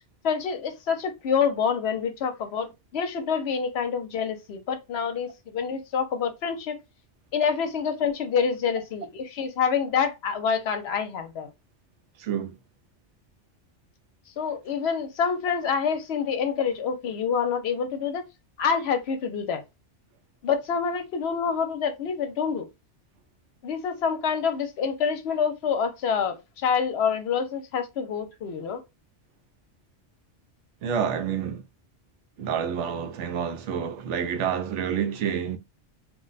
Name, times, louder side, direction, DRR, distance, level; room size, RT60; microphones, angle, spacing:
voice 1, 0.2-6.7 7.3-11.5 14.4-18.2 18.6-19.6 20.4-22.7 23.6-28.8, left 6 dB, 65° left, 0.8 m, -27 dB
voice 2, 12.2-12.6 30.8-31.6 32.4-35.6, right 8 dB, 80° right, 0.9 m, -28 dB
2.5 x 2.1 x 3.8 m
omnidirectional pair, 1.2 m